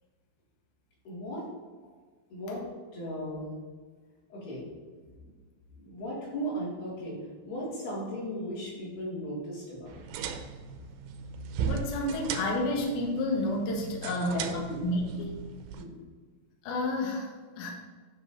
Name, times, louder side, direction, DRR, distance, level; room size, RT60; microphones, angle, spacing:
voice 1, 1.1-1.5 2.3-2.7 2.9-3.5 4.3-4.6 5.2-5.3 5.8-7.2 7.5-10.2 14.1-14.8 15.8-16.0, equal, 60° left, -7 dB, 4.2 m, -36 dB
sound 1, 9.9-15.8, right 6 dB, 85° right, 2.5 m, -37 dB
voice 2, 11.7-15.4 16.6-17.7, left 1 dB, 85° left, 0 dB, 1.8 m, -30 dB
9.3 x 3.2 x 5.4 m, 1.4 s
omnidirectional pair, 5.3 m